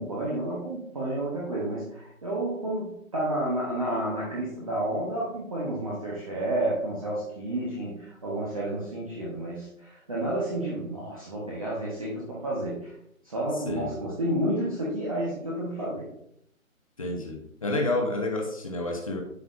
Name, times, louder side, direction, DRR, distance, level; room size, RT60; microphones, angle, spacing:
voice 1, 0.0-12.9 13.2-16.1, right 1 dB, 25° right, -5 dB, 1.1 m, -30 dB
voice 2, 17.0-19.2, left 2 dB, 25° left, 1 dB, 1.0 m, -29 dB
9.6 x 6.4 x 2.5 m, 0.74 s
hypercardioid pair, 175°, 41 cm